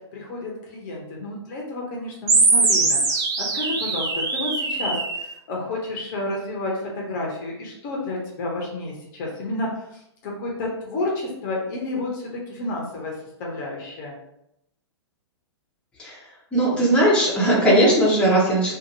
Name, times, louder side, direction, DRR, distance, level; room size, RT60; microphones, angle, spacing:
voice 1, 0.1-3.2 3.5-4.1 4.3-13.1 13.4-14.1, left 2 dB, 45° left, -2 dB, 0.8 m, -30 dB
sound 1, 2.3-5.3, right 3 dB, 25° right, 0.5 m, -21 dB
voice 2, 16.5-18.7, right 1 dB, 5° left, -7 dB, 0.9 m, -18 dB
2.8 x 2.5 x 2.6 m, 0.80 s
figure-of-eight pair, 120°, 15 cm